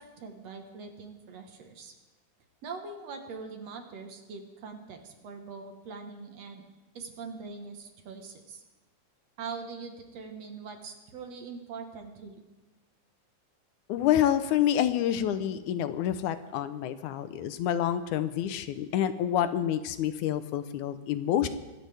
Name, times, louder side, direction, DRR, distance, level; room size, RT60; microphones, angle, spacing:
voice 1, 0.0-1.9 2.6-6.6 6.9-8.6 9.4-12.4, right 4 dB, 60° right, 5 dB, 2.3 m, -42 dB
voice 2, 13.9-21.5, left 10 dB, 85° left, 11 dB, 2.2 m, -28 dB
25.0 x 13.0 x 3.4 m, 1.1 s
omnidirectional pair, 3.5 m